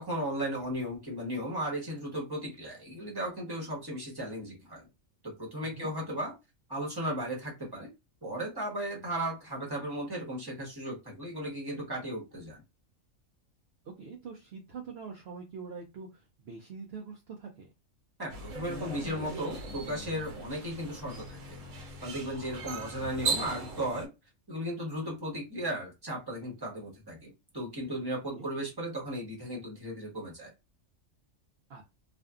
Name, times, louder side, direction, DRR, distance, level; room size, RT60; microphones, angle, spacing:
voice 1, 0.0-4.9 5.2-6.3 6.7-7.9 8.2-12.6 18.2-21.6 22.0-24.1 24.5-30.5, equal, 20° right, -3 dB, 1.0 m, -36 dB
voice 2, 14.0-17.7 28.3-28.5 31.7-31.8, right 5 dB, 60° right, 1 dB, 0.7 m, -44 dB
sound 1, 18.3-24.1, right 3 dB, 85° right, 1.1 m, -38 dB
2.6 x 2.4 x 2.3 m, 0.24 s
omnidirectional pair, 1.3 m